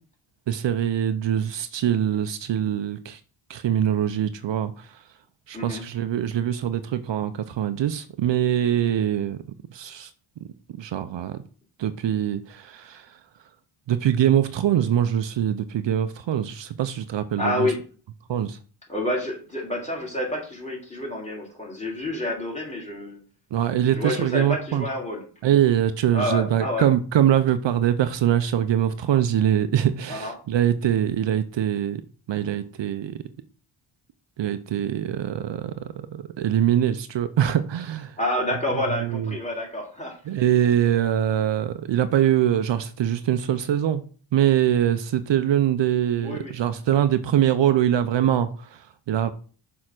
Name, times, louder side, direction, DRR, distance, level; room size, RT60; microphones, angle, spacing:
voice 1, 0.5-3.2 3.5-5.0 5.5-9.4 9.7-10.1 10.8-11.4 11.8-13.2 13.9-17.7 18.3-18.6 23.5-24.9 25.4-32.0 32.3-33.2 34.4-38.2 39.0-39.4 40.3-44.0 44.3-49.3, right 10 dB, 65° right, 11 dB, 0.7 m, -23 dB
voice 2, 17.4-17.8 18.9-23.2 23.9-25.2 26.1-26.9 30.1-30.3 38.2-40.4 46.2-46.5, left 1 dB, 15° left, -2 dB, 3.4 m, -28 dB
6.6 x 3.7 x 6.0 m, 0.40 s
cardioid pair, 70°, 48 cm